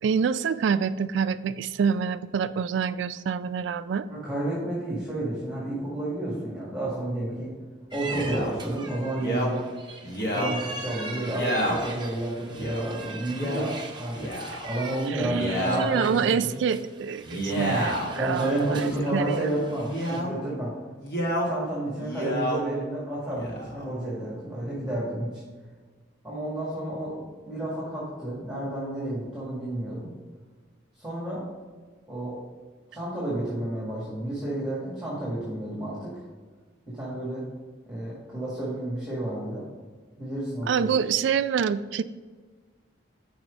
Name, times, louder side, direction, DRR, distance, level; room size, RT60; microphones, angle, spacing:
voice 1, 0.0-4.1 15.1-19.7 40.7-42.0, right 6 dB, 70° right, 13 dB, 0.3 m, -27 dB
voice 2, 4.1-7.5 7.9-9.6 10.3-14.4 14.6-16.5 17.3-17.9 18.2-20.7 21.2-25.4 26.2-30.1 31.0-31.4 32.1-32.4 32.9-36.2 36.9-37.4 37.9-39.7 40.2-40.9, right 1 dB, 5° right, -8 dB, 1.8 m, -31 dB
sound 1, 7.9-20.2, right 4 dB, 25° right, 0.6 m, -40 dB
Male speech man speaking, 8.1-8.5 9.2-9.5 10.0-10.5 11.3-11.8 12.5-12.8 13.3-13.7 14.1-14.7 15.2-15.8 17.2-18.1 18.8-19.2 19.9-20.3 21.0-21.5 21.9-22.6 23.3-23.8, equal, 50° left, 1.4 m, -30 dB
6.1 x 4.9 x 5.2 m, 1.4 s
head